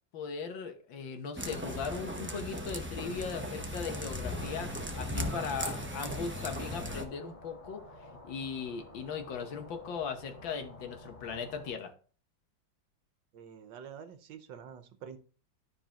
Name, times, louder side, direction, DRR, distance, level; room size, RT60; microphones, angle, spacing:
voice 1, 0.1-7.8 8.2-11.9, left 6 dB, 80° left, 5 dB, 1.8 m, -38 dB
sound 1, 1.4-7.0, equal, 20° right, 0.3 m, -37 dB
sound 2, 4.2-11.7, left 1 dB, 20° left, 1.7 m, -52 dB
voice 2, 13.3-15.2, right 7 dB, 75° right, 8 dB, 1.6 m, -47 dB
12.5 x 4.9 x 2.9 m, 0.40 s
omnidirectional pair, 2.0 m